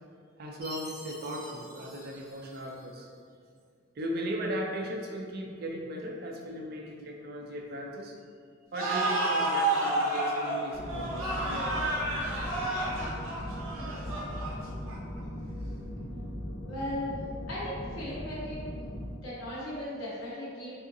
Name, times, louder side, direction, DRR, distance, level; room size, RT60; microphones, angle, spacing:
voice 1, 0.4-3.1 4.0-8.1 8.7-11.6 12.4-12.5, equal, 50° right, 0 dB, 0.4 m, -37 dB
Chime, 0.6-3.1, equal, 15° right, 0.9 m, -47 dB
sound 1, 8.7-15.2, right 2 dB, 90° right, 0.7 m, -30 dB
sound 2, 10.7-19.1, equal, 45° left, 0.5 m, -39 dB
voice 2, 16.7-17.2 17.5-18.8 19.2-20.9, left 1 dB, 85° left, -7 dB, 0.7 m, -37 dB
3.6 x 2.4 x 2.6 m, 2.1 s
head